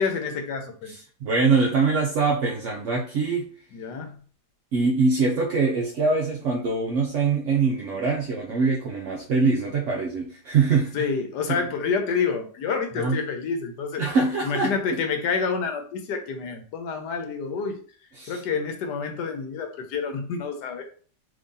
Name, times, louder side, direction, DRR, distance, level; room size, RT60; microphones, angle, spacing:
voice 1, 0.0-0.9 3.7-4.2 10.9-14.0 14.4-17.8 18.3-20.8, left 5 dB, 85° left, 5 dB, 1.3 m, -28 dB
voice 2, 0.9-3.5 4.7-10.9 11.5-11.6 13.0-13.2 14.0-15.0 18.2-18.4, right 4 dB, 65° right, -1 dB, 0.8 m, -23 dB
3.7 x 3.1 x 2.6 m, 0.42 s
omnidirectional pair, 1.8 m